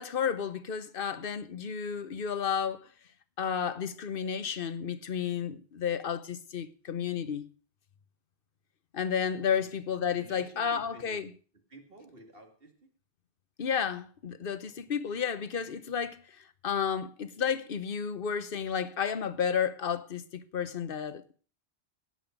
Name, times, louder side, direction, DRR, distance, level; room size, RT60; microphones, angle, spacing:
voice 1, 0.0-2.9 3.4-7.5 8.9-11.3 13.6-21.3, left 7 dB, 60° left, 1.1 m, -32 dB
voice 2, 10.1-11.2 11.7-12.9 14.6-15.0, right 2 dB, 60° right, 2.6 m, -52 dB
17.5 x 7.8 x 5.2 m
omnidirectional pair, 1.1 m